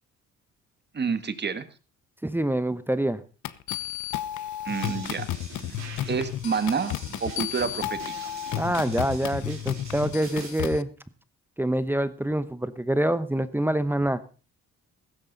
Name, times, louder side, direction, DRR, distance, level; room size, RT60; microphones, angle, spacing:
voice 1, 0.9-1.7 4.6-5.3 6.1-6.9 7.2-8.3, right 5 dB, 35° right, 11 dB, 1.7 m, -28 dB
voice 2, 2.2-3.2 8.6-10.9 11.6-14.2, right 1 dB, 5° right, 13 dB, 0.9 m, -26 dB
sound 1, 3.4-10.8, left 12 dB, 75° left, 0.9 m, -33 dB
sound 2, 4.7-10.6, right 5 dB, 60° right, 5.2 m, -43 dB
15.5 x 13.0 x 4.0 m, 0.35 s
cardioid pair, 90°, 30 cm